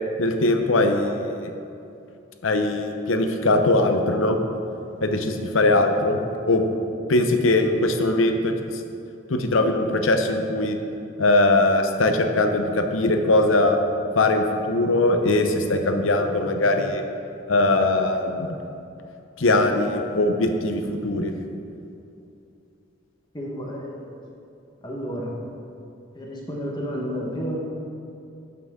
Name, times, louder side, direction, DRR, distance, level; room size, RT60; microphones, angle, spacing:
voice 1, 0.2-1.5 2.4-4.4 5.0-6.2 6.5-6.6 7.1-8.8 9.3-10.8 11.2-13.8 14.1-17.0 17.5-18.6 19.4-21.3, left 2 dB, 85° left, 5 dB, 0.7 m, -21 dB
voice 2, 23.3-24.0 24.8-25.3 26.1-27.6, equal, 20° left, -3 dB, 1.2 m, -31 dB
11.0 x 5.9 x 3.7 m, 2.7 s
head